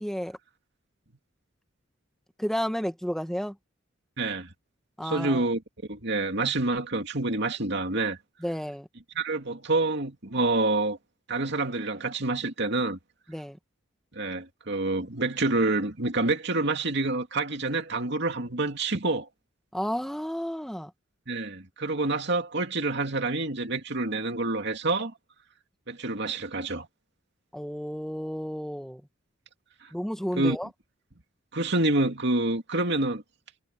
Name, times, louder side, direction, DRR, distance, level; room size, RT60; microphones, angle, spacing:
voice 1, 0.0-0.4 2.4-3.5 5.0-5.5 8.4-8.9 13.3-13.6 19.7-20.9 27.5-29.0 29.9-30.7, equal, ahead, 1.1 m, -32 dB
voice 2, 4.2-4.5 5.0-5.6 5.9-8.2 9.1-11.0 11.3-13.0 14.1-19.3 21.3-25.1 25.9-26.9 29.8-29.9 30.4-30.6 31.5-33.2, right 2 dB, 55° right, 2.6 m, -27 dB
head